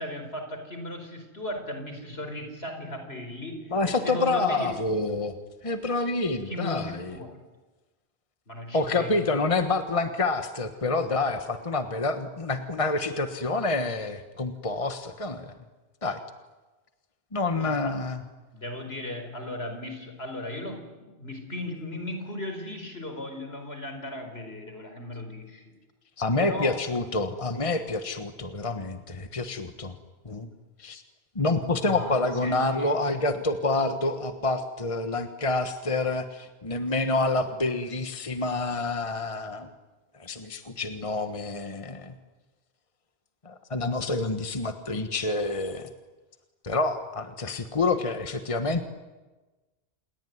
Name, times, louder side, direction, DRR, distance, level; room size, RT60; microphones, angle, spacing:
voice 1, 0.0-4.7 6.5-7.4 8.5-9.3 17.5-18.0 18.5-25.7 26.4-26.8 31.8-32.2 32.4-32.9, left 1 dB, 75° left, 6 dB, 5.0 m, -36 dB
voice 2, 3.7-5.4 5.6-7.2 8.7-15.5 16.0-16.2 17.3-18.2 26.2-29.9 30.2-30.5 30.8-31.0 31.3-39.7 40.2-42.1 43.4-45.9 46.6-48.9, left 3 dB, 30° left, 8 dB, 1.4 m, -28 dB
28.0 x 21.0 x 9.5 m, 1.2 s
omnidirectional pair, 1.1 m